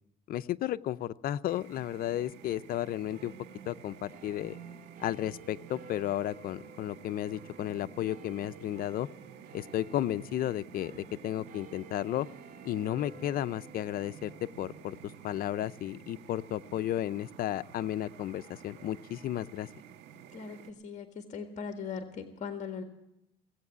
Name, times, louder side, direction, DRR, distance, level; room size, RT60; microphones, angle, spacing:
voice 1, 0.3-3.3 3.7-4.6 5.0-9.1 9.5-12.3 12.6-15.0 15.2-19.7, left 12 dB, 60° left, 15 dB, 0.5 m, -33 dB
sound 1, 1.5-20.7, right 8 dB, 85° right, 1.4 m, -51 dB
sound 2, 3.1-19.8, right 4 dB, 60° right, 2.4 m, -55 dB
voice 2, 20.3-22.8, left 6 dB, 45° left, 5 dB, 1.7 m, -39 dB
18.0 x 8.1 x 9.6 m, 0.84 s
cardioid pair, 110°, 17 cm